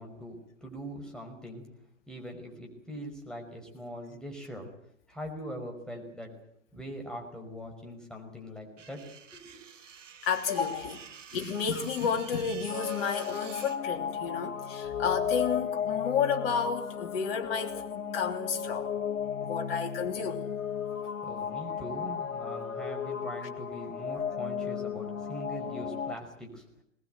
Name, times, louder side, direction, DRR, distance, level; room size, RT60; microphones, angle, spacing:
voice 1, 0.0-1.7 2.1-4.7 5.1-6.3 6.7-9.0 9.3-9.6 21.2-26.6, equal, ahead, 5.5 m, -42 dB
sound 1, 8.8-13.8, right 7 dB, 65° right, 2.1 m, -48 dB
voice 2, 10.2-11.0 11.3-18.9 19.4-20.5, left 6 dB, 45° left, 3.3 m, -31 dB
sound 2, 12.7-26.2, left 7 dB, 85° left, 1.0 m, -35 dB
21.5 x 19.5 x 9.3 m
figure-of-eight pair, 110°, 40 cm